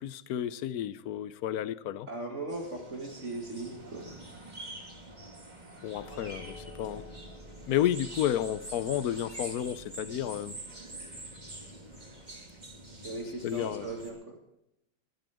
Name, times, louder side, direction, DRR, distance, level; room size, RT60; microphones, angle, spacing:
voice 1, 0.0-2.1 5.8-7.0 7.7-10.6 13.4-13.9, left 11 dB, 65° left, 15 dB, 1.0 m, -31 dB
voice 2, 2.1-4.2 13.0-14.4, right 2 dB, 35° right, 1 dB, 2.3 m, -38 dB
sound 1, 2.5-14.1, right 1 dB, 20° right, 2.6 m, -46 dB
sound 2, 6.0-12.5, equal, 20° left, 5.7 m, -52 dB
19.5 x 14.0 x 3.6 m, 0.81 s
omnidirectional pair, 2.2 m